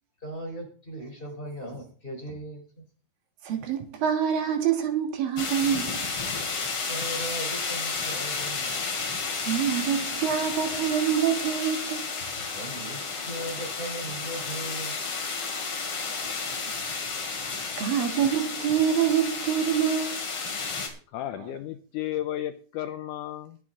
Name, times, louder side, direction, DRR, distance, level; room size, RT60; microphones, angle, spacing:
voice 1, 0.2-2.8 6.5-8.7 12.2-15.0, right 1 dB, 15° left, 3.3 m, -38 dB
voice 2, 3.4-6.1 9.5-12.0 17.8-20.2 21.4-21.5, right 9 dB, 75° right, 3.4 m, -26 dB
sound 1, 5.4-20.9, left 4 dB, 40° left, 3.0 m, -32 dB
voice 3, 21.1-23.6, left 12 dB, 80° left, 1.9 m, -33 dB
20.5 x 7.6 x 3.8 m
omnidirectional pair, 4.1 m